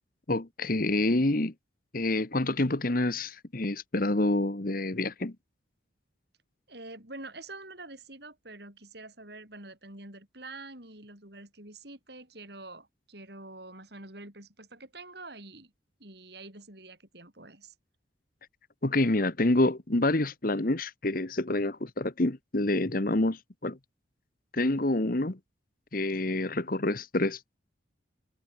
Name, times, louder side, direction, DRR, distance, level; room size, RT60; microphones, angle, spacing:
voice 1, 0.3-1.5 1.9-5.3 18.8-23.8 24.5-25.4 25.9-27.6, left 2 dB, 45° left, 1.3 m, -27 dB
voice 2, 6.7-15.7 16.0-17.7, right 2 dB, 55° right, 7.0 m, -46 dB
head